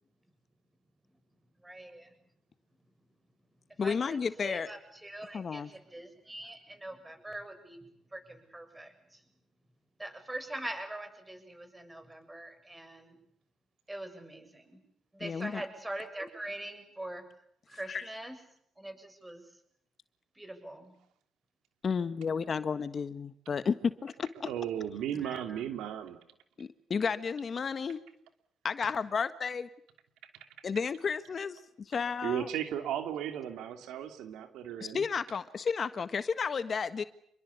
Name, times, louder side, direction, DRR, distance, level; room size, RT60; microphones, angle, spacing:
voice 1, 1.6-2.1 3.8-4.2 4.4-7.9 8.1-9.2 10.0-13.2 13.9-14.8 15.1-17.2 17.7-18.4 18.8-19.4 20.4-20.9 25.2-25.6, right 1 dB, 10° right, 8 dB, 7.2 m, -43 dB
voice 2, 3.8-4.7 5.3-5.7 15.2-15.6 17.9-18.1 21.8-24.5 26.6-28.0 28.6-29.7 30.6-32.5 34.8-37.0, left 6 dB, 45° left, 12 dB, 1.5 m, -32 dB
voice 3, 24.4-26.2 32.2-35.0, right 10 dB, 85° right, 7 dB, 2.9 m, -35 dB
28.0 x 22.0 x 8.4 m, 0.70 s
cardioid pair, 90°, 0 cm